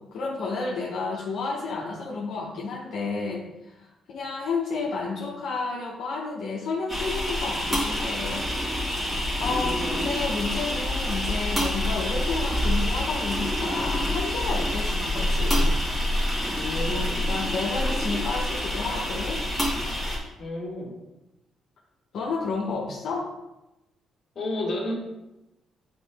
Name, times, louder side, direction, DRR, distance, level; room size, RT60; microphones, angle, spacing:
voice 1, 0.0-8.9 9.4-15.8 16.9-19.4 22.1-23.3, left 4 dB, 70° left, -3 dB, 1.1 m, -31 dB
sound 1, 6.9-20.2, left 1 dB, 5° right, 2.2 m, -27 dB
voice 2, 9.4-9.9 16.6-17.3 20.4-21.0 24.4-25.0, left 2 dB, 45° left, -2 dB, 2.1 m, -32 dB
8.4 x 3.9 x 3.5 m, 0.96 s
cardioid pair, 90°, 0 cm